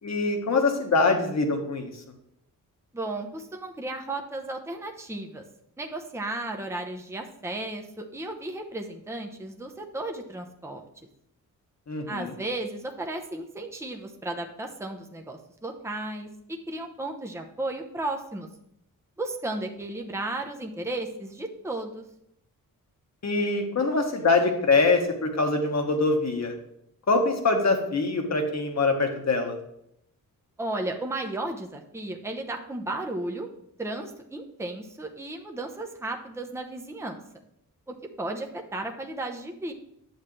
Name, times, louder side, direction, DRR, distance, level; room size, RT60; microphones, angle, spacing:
voice 1, 0.0-1.9 11.9-12.3 23.2-26.5 27.1-29.6, left 3 dB, 50° left, 4 dB, 1.5 m, -24 dB
voice 2, 2.9-5.4 5.8-10.8 12.1-18.5 19.2-22.0 30.6-33.5 33.8-37.2 37.9-39.7, right 2 dB, 10° right, 2 dB, 0.8 m, -34 dB
9.6 x 7.3 x 3.3 m, 0.76 s
wide cardioid pair, 110°, 35 cm